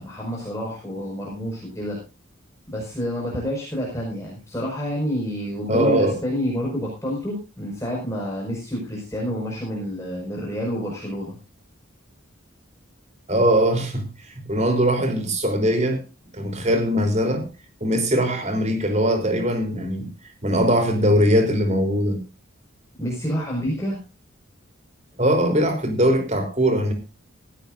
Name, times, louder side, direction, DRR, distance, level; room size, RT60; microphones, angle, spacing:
voice 1, 0.0-2.0 2.7-11.4 23.0-24.0, equal, 15° left, 5.2 m, -28 dB
voice 2, 5.7-6.1 13.3-14.1 14.5-16.0 16.3-17.5 17.8-20.1 20.4-22.2 25.2-26.9, equal, 35° right, 3.5 m, -21 dB
17.0 x 15.5 x 2.6 m
head